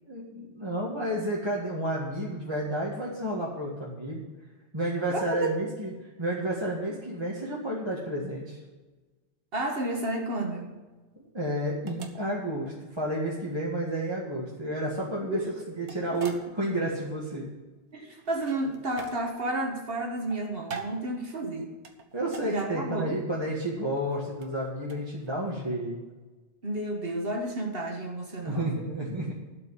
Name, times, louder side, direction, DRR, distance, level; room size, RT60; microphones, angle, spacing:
voice 1, 0.1-4.2 4.7-5.9 6.2-8.6 11.3-17.5 22.1-26.0 28.4-29.3, right 1 dB, 25° right, -5 dB, 1.9 m, -31 dB
voice 2, 5.1-5.6 9.5-10.7 15.2-15.7 17.9-21.7 22.4-23.2 26.6-28.7, right 2 dB, 55° right, 2 dB, 1.7 m, -31 dB
sound 1, 10.2-25.6, right 5 dB, 80° right, 1.4 m, -46 dB
12.0 x 5.6 x 9.0 m, 1.2 s
omnidirectional pair, 1.2 m